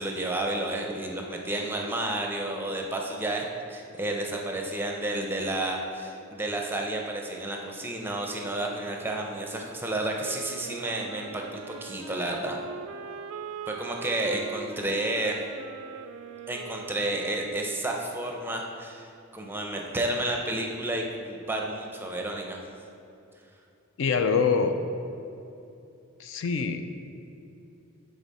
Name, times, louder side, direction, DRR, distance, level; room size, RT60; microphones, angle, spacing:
voice 1, 0.0-12.6 13.7-15.4 16.5-22.6, right 1 dB, 10° right, 1 dB, 0.6 m, -31 dB
sound 1, 10.1-17.9, right 7 dB, 75° right, 0.3 m, -42 dB
voice 2, 24.0-24.7 26.2-26.8, left 5 dB, 60° left, 8 dB, 0.4 m, -24 dB
9.6 x 4.0 x 4.1 m, 2.7 s
head